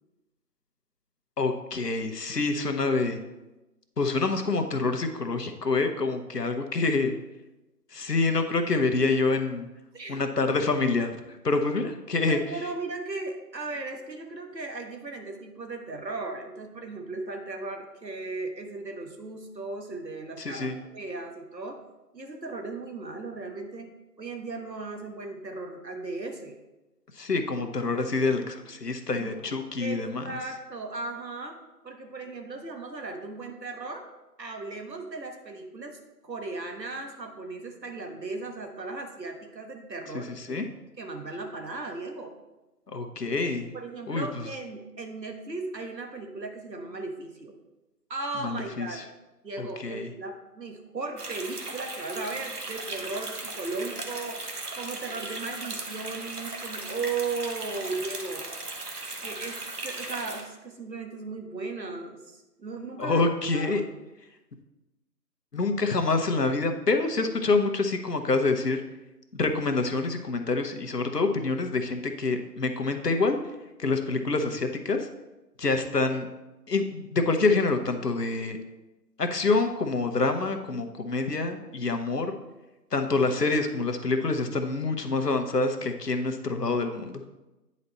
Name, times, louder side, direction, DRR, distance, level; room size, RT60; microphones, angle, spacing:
voice 1, 1.4-3.2 4.0-7.1 7.9-9.7 10.1-12.4 20.4-20.8 27.1-30.4 40.4-40.6 42.9-43.7 44.1-44.5 48.4-49.0 49.6-50.1 63.0-63.9 65.5-68.8 69.3-73.4 73.8-75.1 75.6-76.3 76.7-78.6 79.2-82.3 82.9-87.2, left 3 dB, 70° left, 6 dB, 1.0 m, -26 dB
voice 2, 12.3-21.8 22.1-23.9 24.2-26.6 29.2-29.5 29.8-31.6 31.8-34.0 34.4-36.0 36.2-42.3 43.7-47.6 48.1-49.0 49.4-58.4 59.2-63.2 63.5-63.8, right 3 dB, 80° right, 4 dB, 1.5 m, -36 dB
sound 1, 51.2-60.4, right 2 dB, 65° right, 1.2 m, -37 dB
9.6 x 4.3 x 4.1 m, 1.0 s
figure-of-eight pair, 170°, 49 cm